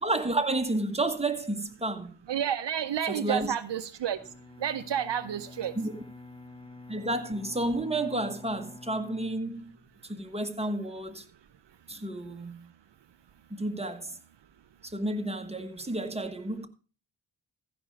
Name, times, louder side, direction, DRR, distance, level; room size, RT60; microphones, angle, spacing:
voice 1, 0.0-2.1 3.1-3.5 5.7-6.0 6.9-9.7 10.0-11.2 11.9-12.7 13.5-14.2 14.8-16.7, right 2 dB, 15° right, 1.3 m, -31 dB
voice 2, 2.3-4.2 4.6-5.7 15.6-15.7, right 9 dB, 70° right, 0.7 m, -30 dB
Bowed string instrument, 4.1-10.2, left 2 dB, 10° left, 0.8 m, -48 dB
15.0 x 5.2 x 5.1 m
cardioid pair, 50°, 45 cm